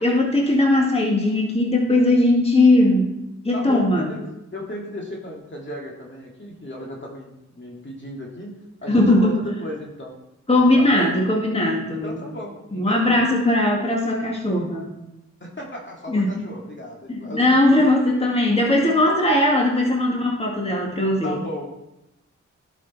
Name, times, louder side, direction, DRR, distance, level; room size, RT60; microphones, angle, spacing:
voice 1, 0.0-3.2 3.4-4.1 8.9-9.3 10.5-12.2 12.7-14.8 16.1-16.3 17.1-21.3, left 1 dB, 20° left, -1 dB, 2.0 m, -19 dB
voice 2, 3.5-4.2 4.5-10.2 10.7-11.1 12.0-13.2 15.4-17.5 21.2-21.6, left 1 dB, 40° left, -1 dB, 2.1 m, -35 dB
11.0 x 5.2 x 4.1 m, 0.91 s
cardioid pair, 50°, 29 cm